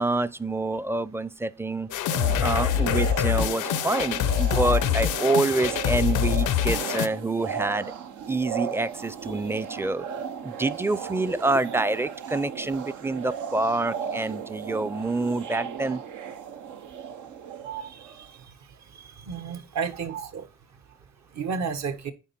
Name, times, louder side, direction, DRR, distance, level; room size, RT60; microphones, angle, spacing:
voice 1, 0.0-1.9 2.4-7.9 8.3-10.1 10.4-16.0, right 2 dB, 10° right, 0.4 m, -27 dB
sound 1, 1.9-7.1, left 10 dB, 85° left, 0.6 m, -25 dB
sound 2, 2.1-18.3, right 7 dB, 85° right, 1.0 m, -35 dB
voice 2, 17.6-18.3 19.3-20.4 21.3-22.1, right 6 dB, 65° right, 1.4 m, -32 dB
8.9 x 4.7 x 4.3 m
cardioid pair, 90°, 30 cm